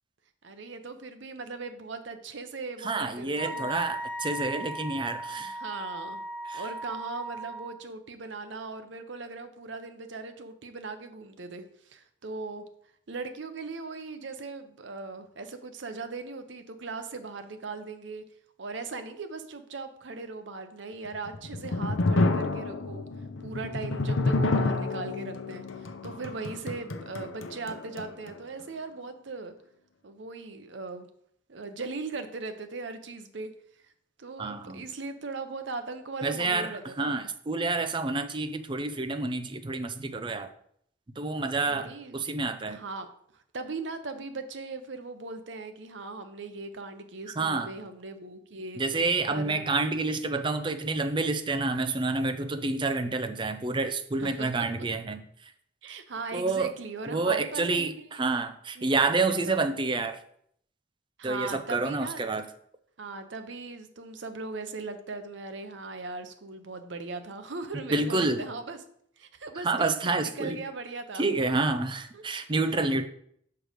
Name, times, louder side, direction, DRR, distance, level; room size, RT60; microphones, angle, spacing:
voice 1, 0.4-3.7 5.3-6.2 6.5-12.6 13.1-18.2 18.6-23.0 23.4-29.5 30.0-31.1 31.5-33.5 34.2-37.1 41.7-42.2 42.7-43.1 43.3-48.8 49.3-49.6 54.2-54.9 55.8-58.0 59.2-59.6 61.2-62.2 63.0-68.8 69.2-71.4 72.1-72.2 72.9-73.1, right 3 dB, 70° right, 8 dB, 0.8 m, -39 dB
voice 2, 2.8-5.6 6.4-6.6 34.4-34.8 36.2-40.5 41.2-42.8 47.4-47.7 48.8-55.2 56.3-56.7 57.1-60.2 61.2-62.4 67.9-68.4 69.6-70.6 71.2-73.1, right 3 dB, 25° right, 9 dB, 0.5 m, -28 dB
Wind instrument woodwind instrument, 3.4-7.8, right 1 dB, 45° left, 1.7 m, -37 dB
sound 1, 21.1-28.4, left 2 dB, 85° left, 0.7 m, -29 dB
6.2 x 4.7 x 5.1 m, 0.67 s
head